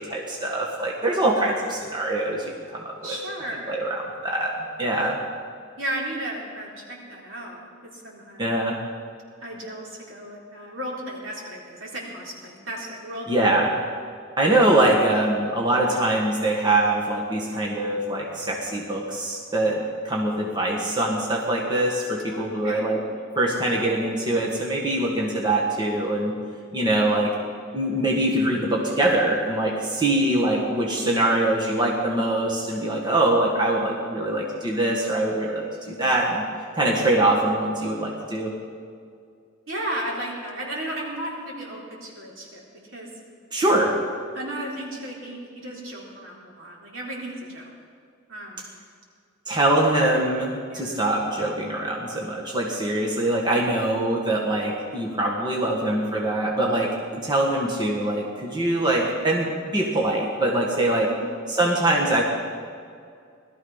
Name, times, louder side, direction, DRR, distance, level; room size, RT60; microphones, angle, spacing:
voice 1, 0.0-3.2 3.7-4.5 4.8-5.2 8.4-8.8 13.3-13.7 14.4-23.0 23.3-26.3 26.7-27.3 27.7-36.4 36.7-38.5 43.5-43.9 49.5-61.1 61.5-62.2, right 1 dB, 20° right, -2 dB, 1.6 m, -23 dB
voice 2, 3.0-3.9 5.8-8.5 9.4-13.3 22.3-22.9 30.4-30.6 39.7-42.6 42.9-43.1 44.3-47.7 48.3-48.6 50.7-51.0 61.1-61.5, right 1 dB, 70° right, -3 dB, 3.9 m, -34 dB
18.0 x 13.5 x 5.7 m, 2.3 s
head